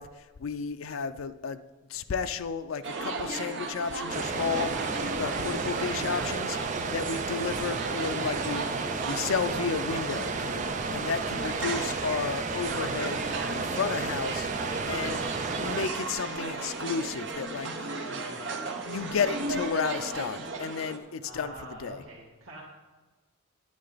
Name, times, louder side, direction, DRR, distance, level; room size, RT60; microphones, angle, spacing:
voice 1, 0.0-1.6 1.9-6.6 6.9-8.7 9.0-14.5 14.9-15.2 15.5-17.7 18.1-18.2 18.8-22.0, left 6 dB, 85° left, 9 dB, 0.5 m, -32 dB
sound 1, 2.8-21.0, right 3 dB, 60° right, 1.0 m, -35 dB
sound 2, 4.1-15.9, right 4 dB, 40° right, 0.5 m, -33 dB
voice 2, 5.3-5.6 7.0-7.5 14.9-15.3 18.1-18.5 21.2-22.6, right 2 dB, 85° right, -6 dB, 1.7 m, -45 dB
sound 3, 11.7-16.7, left 1 dB, 40° left, 1.2 m, -47 dB
9.6 x 9.4 x 4.0 m, 1.3 s
head